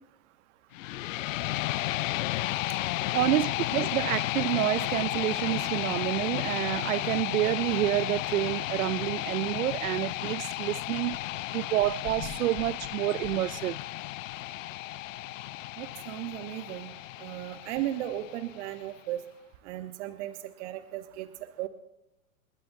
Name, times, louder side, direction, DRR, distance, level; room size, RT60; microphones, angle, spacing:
sound 1, 0.7-18.7, left 16 dB, 65° left, 0.6 m, -33 dB
voice 1, 3.1-11.2 11.5-13.8, right 15 dB, 75° right, 0.5 m, -28 dB
sound 2, 11.1-11.5 11.8-13.9 14.3-14.4 15.0-15.1 15.3-15.4 15.9-16.0 17.7-17.9, left 5 dB, 40° left, 5.2 m, -45 dB
voice 2, 15.8-16.9 17.2-19.2 19.6-20.3 20.6-21.3 21.6-21.7, right 13 dB, 50° right, 1.1 m, -35 dB
29.0 x 12.5 x 2.6 m
hypercardioid pair, 105°, 43 cm